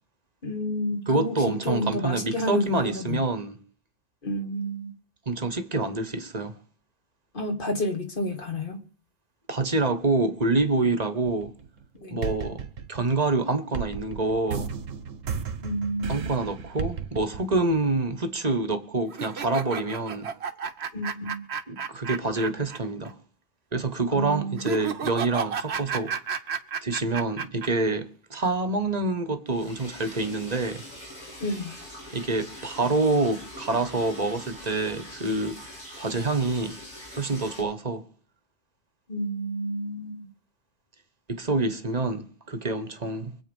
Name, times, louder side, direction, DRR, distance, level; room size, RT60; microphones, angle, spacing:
voice 1, 0.4-3.3 4.2-4.9 7.3-8.8 12.0-12.2 15.6-16.3 20.9-21.5 24.1-24.7 31.4-31.8 39.1-40.3, equal, 45° left, 2.0 m, -30 dB
voice 2, 1.1-3.6 5.3-6.5 9.5-11.5 12.1-12.6 12.9-14.7 16.1-20.3 21.7-23.2 23.7-26.1 26.8-30.8 32.1-35.6 36.0-36.7 37.2-38.0 41.3-43.4, right 3 dB, 35° right, 1.2 m, -27 dB
sound 1, 11.3-11.8 12.2-18.1, right 6 dB, 80° right, 1.5 m, -34 dB
sound 2, 19.1-22.8 23.1-23.2 24.6-27.7, right 6 dB, 60° right, 1.1 m, -32 dB
Liquid, 29.5-37.6, equal, 60° left, 5.0 m, -43 dB
24.5 x 8.4 x 5.4 m
omnidirectional pair, 1.3 m